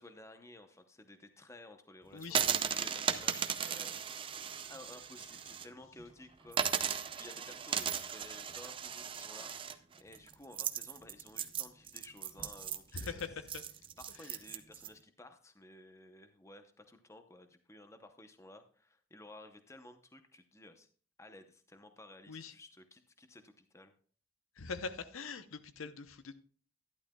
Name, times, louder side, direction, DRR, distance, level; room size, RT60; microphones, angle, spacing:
voice 1, 0.0-4.3 4.7-13.3 14.0-20.9 21.2-23.9, left 2 dB, 15° left, 8 dB, 0.7 m, -55 dB
voice 2, 2.1-2.4 12.9-13.6 14.2-14.4 22.3-22.5 24.6-26.4, left 4 dB, 90° left, 11 dB, 0.8 m, -42 dB
sound 1, 2.2-5.7 6.0-6.1 6.5-14.9, right 7 dB, 25° right, 0.4 m, -36 dB
12.0 x 11.0 x 2.3 m, 0.43 s
head